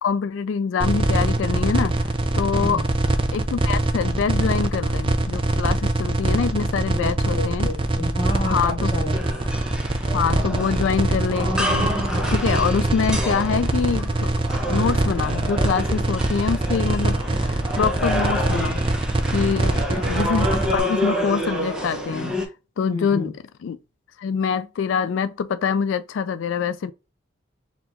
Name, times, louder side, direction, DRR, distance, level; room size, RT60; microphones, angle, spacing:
voice 1, 0.0-2.1 2.3-2.8 3.3-7.7 8.4-8.9 10.1-11.9 12.3-14.3 14.7-18.8 19.3-20.5 20.7-22.4 22.8-23.3 23.6-23.8 24.2-26.9, left 6 dB, 80° left, 0.3 m, -25 dB
sound 1, 0.8-20.8, right 2 dB, 25° right, 0.4 m, -23 dB
voice 2, 6.9-9.4 19.5-20.1 22.9-23.3, left 1 dB, 25° left, 0.8 m, -31 dB
sound 2, 9.1-22.5, equal, 5° right, 1.0 m, -29 dB
4.1 x 2.9 x 2.7 m
head